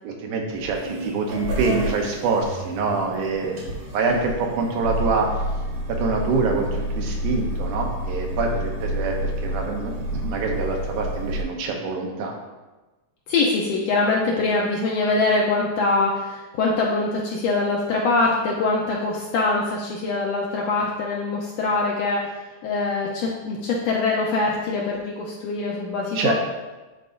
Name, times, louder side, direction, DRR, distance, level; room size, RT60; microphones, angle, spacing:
voice 1, 0.0-3.6 3.9-5.4 5.9-12.4 26.2-26.3, right 4 dB, 85° right, 1 dB, 2.4 m, -25 dB
sound 1, 0.5-11.4, equal, 60° right, 1.7 m, -29 dB
voice 2, 13.3-22.3 22.6-26.3, left 3 dB, 80° left, -2 dB, 1.5 m, -23 dB
10.5 x 3.8 x 2.5 m, 1.2 s
omnidirectional pair, 3.6 m